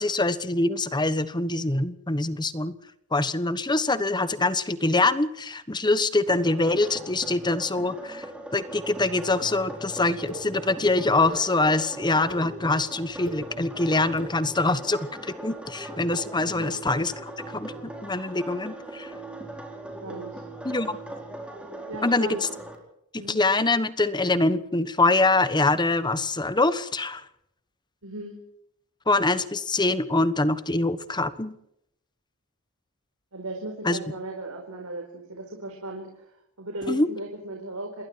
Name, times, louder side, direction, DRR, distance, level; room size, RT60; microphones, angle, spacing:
voice 1, 0.0-2.7 3.1-8.2 8.5-17.7 18.0-19.1 20.6-21.0 22.0-22.5 23.3-27.2 29.1-31.5 33.8-34.0 36.9-37.1, left 2 dB, 20° left, 13 dB, 1.2 m, -24 dB
sound 1, 6.3-22.8, right 1 dB, 5° right, 4.5 m, -40 dB
sound 2, 9.3-9.4 10.3-10.4 11.0-11.4 12.0-12.4 13.1-13.4 14.1-14.3, equal, 65° left, 7.9 m, -38 dB
voice 2, 16.5-16.8 20.0-20.4 21.9-22.4 23.2-23.4 28.0-28.4 33.3-36.2 36.6-38.0, right 2 dB, 80° right, 1 dB, 4.6 m, -36 dB
28.0 x 21.5 x 4.7 m, 0.77 s
head